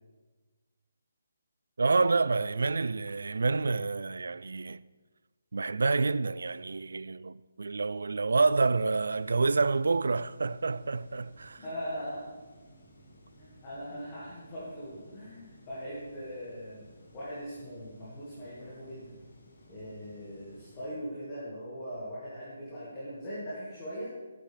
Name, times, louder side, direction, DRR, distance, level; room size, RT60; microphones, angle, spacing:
voice 1, 1.8-4.8 5.5-11.6, right 3 dB, 70° right, 0.3 m, -28 dB
sound 1, 8.3-20.9, equal, 40° left, 2.4 m, -57 dB
voice 2, 11.6-12.3 13.4-16.8 17.1-19.2 19.7-24.1, equal, 15° left, 1.9 m, -40 dB
13.5 x 9.2 x 3.4 m
hypercardioid pair, 180°, 0 cm